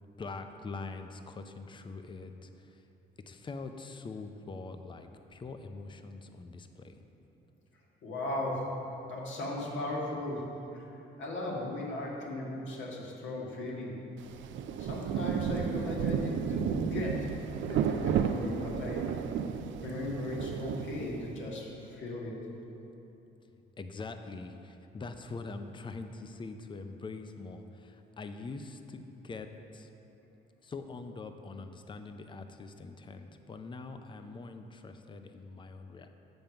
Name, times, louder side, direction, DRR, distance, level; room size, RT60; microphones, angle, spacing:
voice 1, 0.2-2.8 3.3-7.0 21.3-21.4 23.8-29.9 30.6-36.1, left 3 dB, 25° left, 7 dB, 0.5 m, -43 dB
voice 2, 8.0-8.7 9.1-10.4 10.7-10.8 11.2-13.9 14.8-17.3 17.7-19.1 19.8-22.4, left 2 dB, 75° left, -3 dB, 1.8 m, -37 dB
Rain, 14.2-21.4, right 7 dB, 70° right, 0.4 m, -32 dB
7.5 x 5.4 x 5.7 m, 2.9 s
cardioid pair, 90°, 20 cm